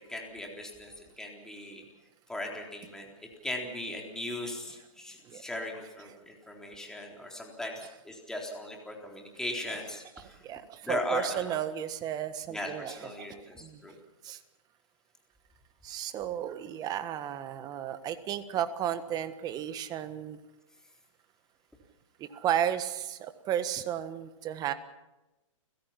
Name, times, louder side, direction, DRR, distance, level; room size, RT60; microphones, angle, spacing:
voice 1, 0.1-1.8 2.3-10.4 10.8-11.6 12.5-13.9, left 1 dB, 5° left, 0 dB, 3.8 m, -38 dB
voice 2, 10.2-13.8 14.2-14.4 15.8-20.4 22.2-24.7, right 10 dB, 25° right, 11 dB, 1.4 m, -33 dB
29.5 x 16.5 x 5.8 m, 1.0 s
hypercardioid pair, 135°, 17 cm